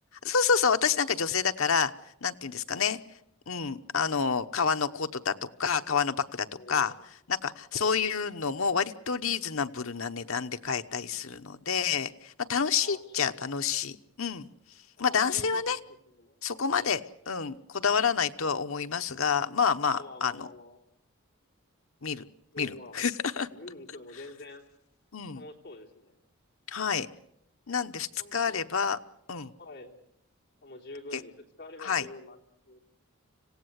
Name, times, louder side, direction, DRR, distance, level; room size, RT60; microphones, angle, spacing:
voice 1, 0.2-1.9 2.2-3.0 3.5-5.3 5.6-6.9 7.3-14.5 15.0-15.8 16.4-17.0 17.3-20.5 22.0-22.2 22.6-23.5 25.1-25.4 26.7-27.1 27.7-29.0 29.3-29.5 31.1-31.2 31.8-32.1, left 6 dB, 70° left, 9 dB, 1.0 m, -28 dB
voice 2, 6.5-6.9 7.7-7.9 12.8-13.2 15.0-15.8 16.1-16.4 16.7-16.9 19.9-20.8 22.5-23.0 23.4-24.6 25.3-26.2 28.2-28.5 29.6-29.9 30.6-31.3 31.6-32.8, left 2 dB, 50° left, 0 dB, 3.4 m, -47 dB
26.0 x 17.0 x 8.2 m, 0.75 s
head